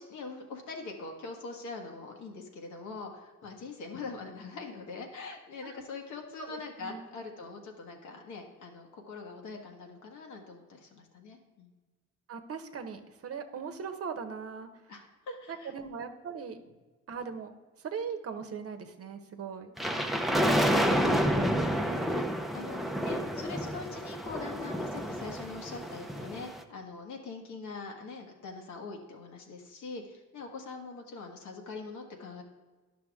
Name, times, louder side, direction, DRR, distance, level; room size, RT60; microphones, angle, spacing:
voice 1, 0.0-11.7 14.9-15.7 21.9-32.4, left 4 dB, 75° left, 2 dB, 1.6 m, -43 dB
voice 2, 6.4-7.1 12.3-14.7 15.5-16.6 17.1-19.7 27.6-27.7, right 6 dB, 50° right, 8 dB, 0.9 m, -40 dB
sound 1, 19.8-26.6, equal, ahead, 0.6 m, -29 dB
10.5 x 6.0 x 3.5 m, 1.3 s
cardioid pair, 90°, 30 cm